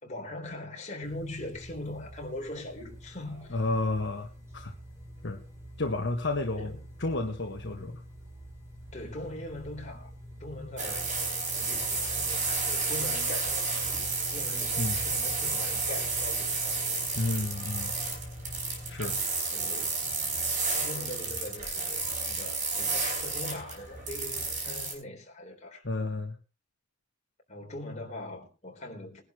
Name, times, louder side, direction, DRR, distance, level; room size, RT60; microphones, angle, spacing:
voice 1, 0.0-3.6 6.6-6.9 8.9-10.1 10.4-11.1 11.5-16.8 19.5-20.1 20.8-25.9 27.5-29.2, left 1 dB, 35° left, 3.8 m, -41 dB
sound 1, 1.0-19.2, equal, 15° right, 5.4 m, -46 dB
voice 2, 3.5-4.7 5.2-5.4 5.8-6.7 7.0-8.0 14.8-15.0 17.1-17.9 18.9-19.2 25.8-26.3, left 2 dB, 60° left, 1.5 m, -31 dB
sound 2, 10.8-24.9, right 4 dB, 40° right, 5.2 m, -31 dB
21.5 x 11.5 x 3.0 m
head